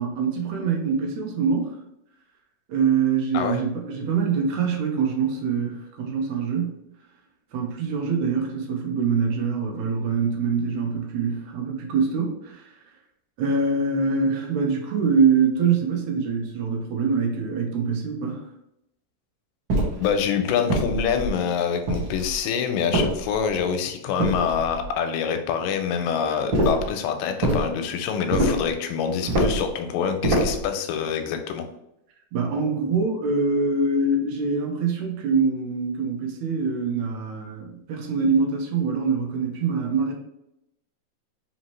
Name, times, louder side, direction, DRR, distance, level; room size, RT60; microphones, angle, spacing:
voice 1, 0.0-1.8 2.7-6.8 7.5-12.7 13.4-18.5 32.3-40.1, right 5 dB, 75° right, 2 dB, 1.7 m, -24 dB
sound 1, 19.7-20.1 20.7-21.3 21.9-22.4 22.9-23.6 24.2-24.9 26.5-26.9 27.4-27.7 28.3-28.7 29.3-29.7 30.2-30.7, right 1 dB, 60° right, 1.3 m, -24 dB
voice 2, 20.0-31.7, left 7 dB, 90° left, 6 dB, 2.2 m, -26 dB
5.2 x 2.8 x 3.0 m, 0.82 s
omnidirectional pair, 3.9 m